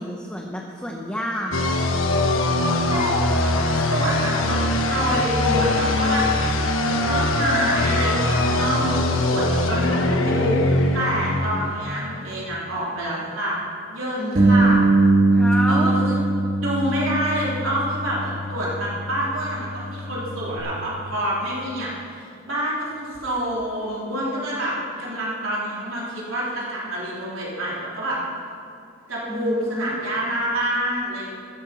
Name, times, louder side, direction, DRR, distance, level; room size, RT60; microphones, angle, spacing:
voice 1, 0.0-1.7 14.2-14.8 15.3-15.9 29.3-29.9, equal, 5° left, -1 dB, 0.8 m, -30 dB
sound 1, 1.5-12.1, left 2 dB, 85° left, 1.2 m, -22 dB
voice 2, 3.5-13.6 13.9-14.8 15.7-28.2 29.1-31.3, right 1 dB, 85° right, -6 dB, 3.7 m, -27 dB
Bass guitar, 14.4-20.6, right 2 dB, 40° right, 1.5 m, -21 dB
15.0 x 11.5 x 4.2 m, 2.5 s
head